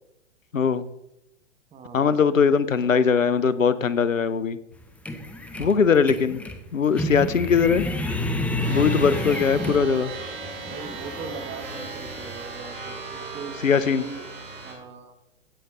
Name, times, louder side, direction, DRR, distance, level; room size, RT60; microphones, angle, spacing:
voice 1, 0.5-0.9 1.9-4.6 5.6-6.4 6.7-7.9 8.7-10.1 13.6-14.1, left 6 dB, 85° left, 16 dB, 0.8 m, -20 dB
voice 2, 1.7-2.1 5.6-5.9 10.7-14.3 14.6-15.1, right 5 dB, 15° right, 7 dB, 1.2 m, -40 dB
sound 1, 4.7-10.2 10.7-12.3, left 1 dB, 5° left, 0.6 m, -30 dB
sound 2, 8.6-14.7, right 4 dB, 45° right, 4.0 m, -37 dB
sound 3, 8.8-11.8, left 1 dB, 25° left, 3.6 m, -42 dB
16.5 x 6.8 x 3.7 m, 0.85 s
figure-of-eight pair, 115°, 38 cm